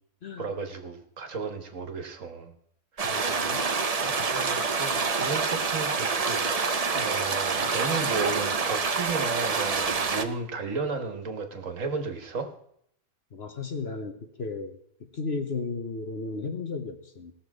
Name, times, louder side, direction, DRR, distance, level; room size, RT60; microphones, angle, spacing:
voice 1, 0.4-2.5 4.0-12.5, right 4 dB, 60° right, 6 dB, 1.6 m, -34 dB
voice 2, 3.0-3.7 7.2-7.4 13.3-14.7 15.1-17.3, left 4 dB, 50° left, 6 dB, 1.1 m, -34 dB
sound 1, 3.0-10.2, right 4 dB, 35° right, 0.6 m, -27 dB
18.0 x 7.0 x 4.8 m, 0.69 s
omnidirectional pair, 1.6 m